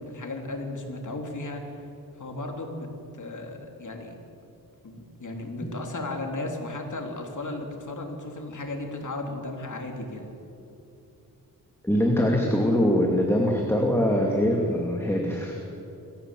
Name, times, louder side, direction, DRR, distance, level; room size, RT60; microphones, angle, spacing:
voice 1, 0.0-1.8 2.2-2.9 3.1-4.1 4.8-10.3, left 2 dB, 55° left, 2 dB, 3.4 m, -35 dB
voice 2, 11.8-15.6, equal, 5° left, 0 dB, 2.4 m, -23 dB
24.5 x 15.0 x 7.8 m, 2.8 s
wide cardioid pair, 105°, 37 cm